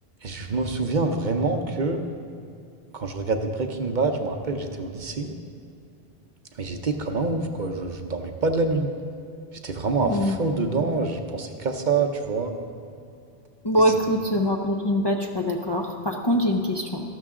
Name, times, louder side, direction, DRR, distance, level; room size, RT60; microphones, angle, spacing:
voice 1, 0.2-2.0 2.9-5.3 6.6-8.9 9.6-12.5, right 3 dB, 50° right, 5 dB, 0.8 m, -26 dB
voice 2, 10.0-10.4 13.6-17.0, equal, 30° left, 2 dB, 0.5 m, -23 dB
13.0 x 12.5 x 3.7 m, 2.5 s
omnidirectional pair, 1.1 m